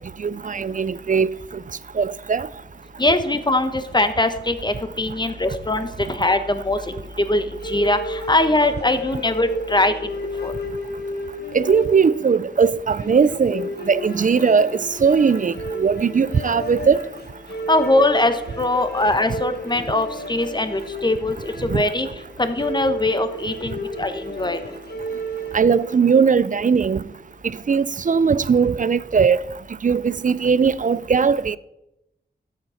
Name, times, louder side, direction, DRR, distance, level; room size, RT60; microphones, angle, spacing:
voice 1, 0.2-1.3 2.0-2.5 11.5-17.0 21.7-21.8 25.5-27.0 27.7-29.4 29.8-31.6, right 6 dB, 45° right, 0.4 m, -19 dB
voice 2, 3.0-9.9 10.4-10.5 17.7-22.1 22.4-24.6, left 2 dB, 25° left, 1.1 m, -21 dB
sound 1, 7.6-26.1, equal, 60° left, 1.7 m, -33 dB
13.0 x 8.3 x 5.7 m
wide cardioid pair, 80°, 19 cm